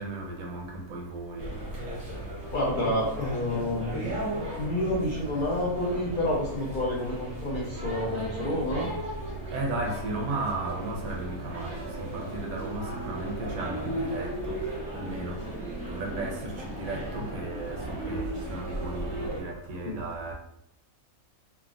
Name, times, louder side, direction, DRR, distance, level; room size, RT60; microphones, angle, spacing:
voice 1, 0.0-1.5 9.5-20.3, right 2 dB, 75° right, 1.0 m, -35 dB
sound 1, 1.4-19.4, right 1 dB, 35° right, 0.6 m, -37 dB
voice 2, 2.5-4.1 4.6-8.9 19.8-20.0, left 1 dB, 75° left, 0.4 m, -29 dB
sound 2, 7.0-8.3 8.7-8.8 9.4-18.4, equal, 35° left, 0.8 m, -40 dB
3.4 x 2.0 x 2.4 m
omnidirectional pair, 1.6 m